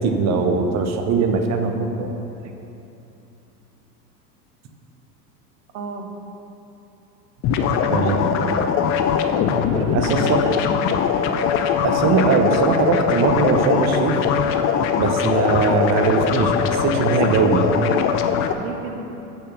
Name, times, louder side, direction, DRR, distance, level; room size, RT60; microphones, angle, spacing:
voice 1, 0.0-2.1 7.9-8.2 9.9-10.4 11.8-14.2 15.0-17.7, right 4 dB, 30° right, 4 dB, 0.9 m, -20 dB
voice 2, 5.7-6.1 7.6-8.7 9.7-11.3 17.7-18.1 18.6-19.1, right 3 dB, 60° right, 3 dB, 1.2 m, -32 dB
sound 1, 7.4-18.5, left 7 dB, 30° left, 0.4 m, -21 dB
6.5 x 5.9 x 6.7 m, 2.9 s
hypercardioid pair, 85°, 49 cm